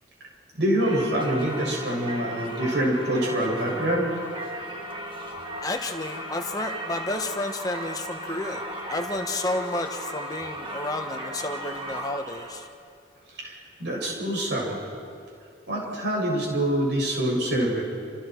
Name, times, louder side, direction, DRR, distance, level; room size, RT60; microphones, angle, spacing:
voice 1, 0.6-4.2 13.3-14.8 15.7-17.8, right 1 dB, 65° right, -2 dB, 7.2 m, -25 dB
Singing / Church bell, 0.8-12.7, equal, 25° right, 2.0 m, -36 dB
voice 2, 5.6-12.7, left 2 dB, 20° left, 4 dB, 1.4 m, -31 dB
28.5 x 28.0 x 4.7 m, 2.6 s
head